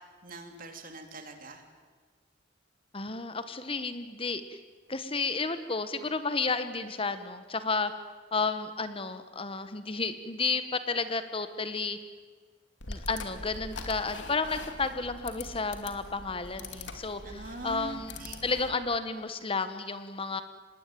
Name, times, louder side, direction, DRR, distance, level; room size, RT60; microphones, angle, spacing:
voice 1, 0.2-1.6 17.2-18.4, right 2 dB, 50° right, 5 dB, 3.3 m, -43 dB
voice 2, 2.9-4.6 4.9-7.9 8.3-12.0 12.9-20.4, left 4 dB, 30° left, 11 dB, 1.1 m, -32 dB
sound 1, 12.8-18.7, left 3 dB, 80° left, 2.6 m, -43 dB
26.0 x 21.0 x 9.2 m, 1.5 s
head